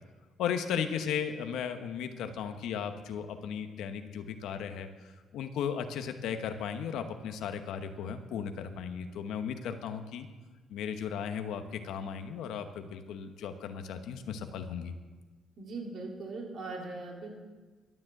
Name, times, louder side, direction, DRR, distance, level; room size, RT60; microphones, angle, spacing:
voice 1, 0.4-10.3 10.7-14.9, left 7 dB, 85° left, 8 dB, 0.9 m, -36 dB
voice 2, 15.6-17.3, right 3 dB, 65° right, 0 dB, 3.3 m, -40 dB
12.5 x 7.3 x 7.8 m, 1.3 s
cardioid pair, 90°, 0 cm